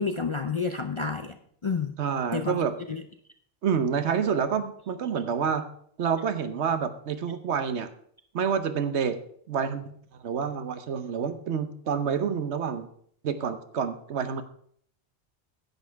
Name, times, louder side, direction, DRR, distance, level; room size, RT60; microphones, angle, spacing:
voice 1, 0.0-1.4 1.6-1.9 2.3-2.6 2.9-3.0, left 5 dB, 40° left, 6 dB, 0.4 m, -29 dB
voice 2, 2.0-2.7 3.6-5.6 6.0-7.9 8.3-9.2 9.5-12.9 13.2-14.4, right 7 dB, 75° right, 10 dB, 1.1 m, -28 dB
10.5 x 8.5 x 4.5 m, 0.64 s
omnidirectional pair, 1.2 m